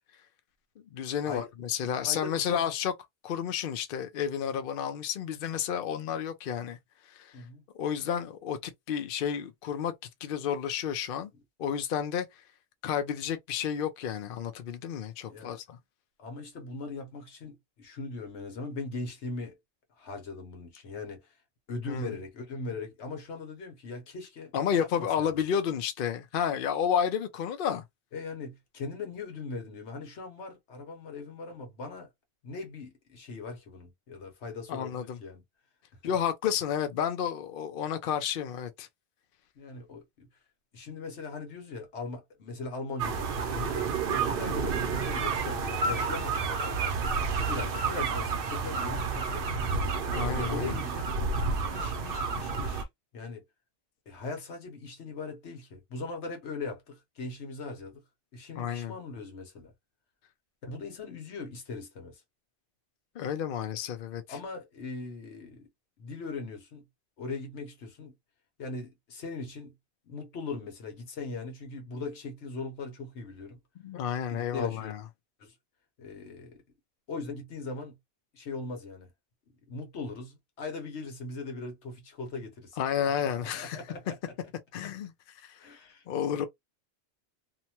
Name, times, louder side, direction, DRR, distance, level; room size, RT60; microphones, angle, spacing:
voice 1, 0.9-2.9 3.2-6.8 7.1-7.3 7.8-9.9 10.2-11.3 11.6-12.3 12.8-15.8 21.9-22.1 24.5-27.8 34.7-35.2 36.0-38.9 50.1-50.8 58.6-58.9 63.2-64.4 73.8-75.0 82.8-83.8 84.7-85.1 85.4-85.6 86.1-86.5, left 8 dB, 60° left, 0.7 m, -31 dB
voice 2, 1.9-2.7 7.3-7.6 15.3-15.6 16.2-19.6 19.9-21.3 21.7-25.3 28.1-32.1 32.4-35.4 39.6-40.3 40.7-47.1 47.5-50.0 50.4-51.1 51.7-52.9 53.1-53.4 54.1-58.0 58.3-59.7 60.6-62.2 64.3-65.7 66.0-66.8 67.2-68.1 68.6-69.7 70.0-73.6 74.3-74.9 75.4-75.5 76.0-76.6 77.1-78.0 78.3-79.1 79.7-82.8 83.2-84.3 85.6-86.0, left 3 dB, 80° left, 1.2 m, -40 dB
sound 1, 43.0-52.8, right 4 dB, 60° right, 0.8 m, -30 dB
2.8 x 2.2 x 2.8 m
omnidirectional pair, 1.2 m